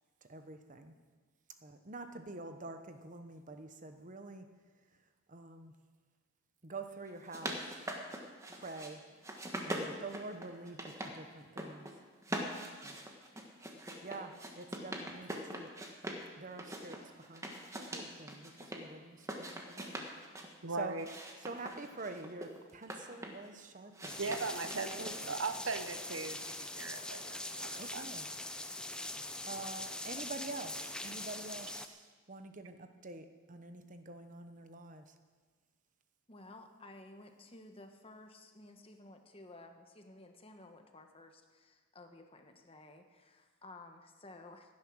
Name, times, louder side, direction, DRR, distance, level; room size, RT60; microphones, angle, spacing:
voice 1, 0.2-0.9 1.6-4.4 5.3-5.7 6.6-7.9 8.5-9.0 9.6-11.9 12.8-13.0 14.0-15.7 16.4-20.1 20.4-21.0 21.4-24.2 24.9-25.4 27.8-28.3 29.5-35.1, right 3 dB, 40° right, 8 dB, 1.0 m, -47 dB
sound 1, 7.1-8.9 9.2-11.1 11.4-11.9 12.2-16.2 16.6-18.8 19.2-20.5 21.0-23.5 23.9-25.4, right 1 dB, 15° right, 1.5 m, -42 dB
voice 2, 20.6-21.0 24.2-28.1, right 3 dB, 65° right, 9 dB, 0.9 m, -39 dB
sound 2, 24.1-31.9, left 1 dB, 5° left, 0.6 m, -42 dB
voice 3, 36.3-44.8, left 2 dB, 25° left, 5 dB, 1.2 m, -54 dB
17.0 x 10.5 x 6.3 m, 1.5 s
head